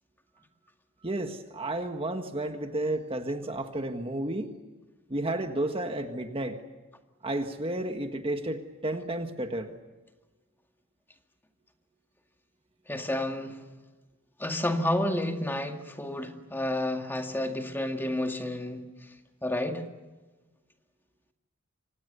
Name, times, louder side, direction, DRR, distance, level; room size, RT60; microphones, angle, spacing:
voice 1, 1.0-4.5 5.1-6.6 7.2-9.7, right 1 dB, 25° right, 6 dB, 1.6 m, -32 dB
voice 2, 12.9-13.6 14.4-18.8 19.4-19.8, left 1 dB, 10° left, 4 dB, 2.1 m, -30 dB
28.5 x 25.0 x 6.9 m, 1.2 s
head